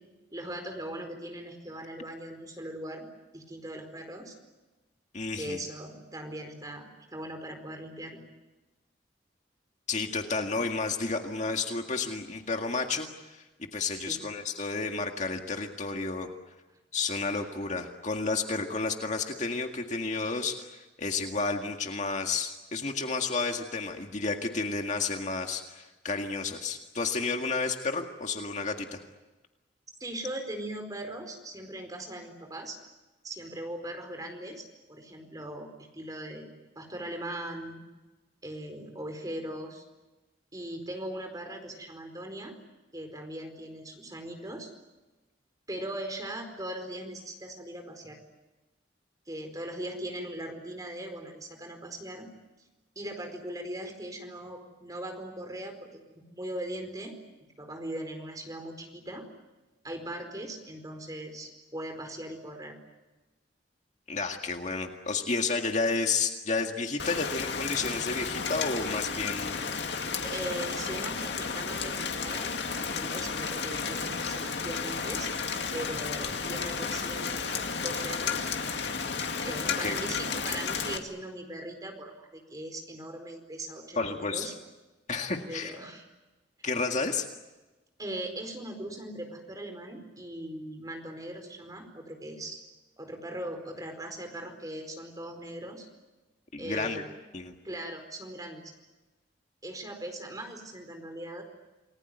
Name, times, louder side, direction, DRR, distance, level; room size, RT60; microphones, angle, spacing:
voice 1, 0.3-3.0 3.3-4.3 5.3-8.2 13.9-14.2 30.0-32.8 33.2-35.7 35.9-36.5 36.7-37.8 38.4-39.8 40.5-42.5 42.9-44.7 45.7-48.2 49.3-52.3 52.9-55.9 56.2-57.1 57.6-59.3 59.8-62.8 70.2-75.3 75.7-77.5 77.8-78.5 79.4-84.5 85.5-86.1 88.0-92.6 93.0-95.9 96.6-97.0 97.6-98.7 99.6-101.4, right 1 dB, 20° right, 5 dB, 4.6 m, -39 dB
voice 2, 5.1-5.6 9.9-13.4 13.7-16.3 16.9-29.0 64.1-69.6 76.3-76.4 79.8-80.0 84.0-84.5 85.1-85.8 86.6-87.3 96.5-97.0 97.3-97.5, left 4 dB, 40° left, 4 dB, 1.9 m, -31 dB
Rain, 67.0-81.0, left 5 dB, 70° left, 2.2 m, -33 dB
29.0 x 20.0 x 9.4 m, 1.1 s
head